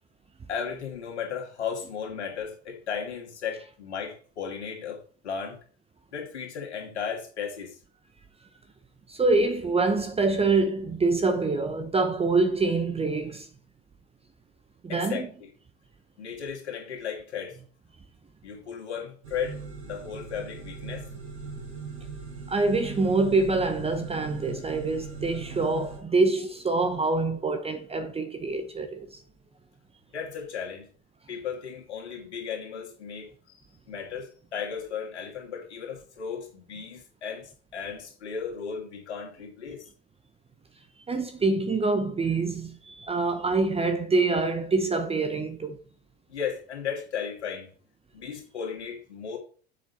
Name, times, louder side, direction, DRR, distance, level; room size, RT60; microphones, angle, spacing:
voice 1, 0.5-5.6 6.1-7.8 14.9-15.5 16.2-17.6 18.4-21.1 30.1-30.9 31.3-33.6 33.9-39.9 46.3-47.7 48.1-49.4, left 7 dB, 85° left, 2.5 m, -35 dB
voice 2, 9.1-13.5 14.8-15.3 22.5-29.2 41.1-45.8, right 3 dB, 20° right, 0.9 m, -25 dB
sound 1, 19.2-26.0, right 5 dB, 85° right, 3.9 m, -39 dB
7.5 x 6.0 x 4.2 m
hypercardioid pair, 80°, 33 cm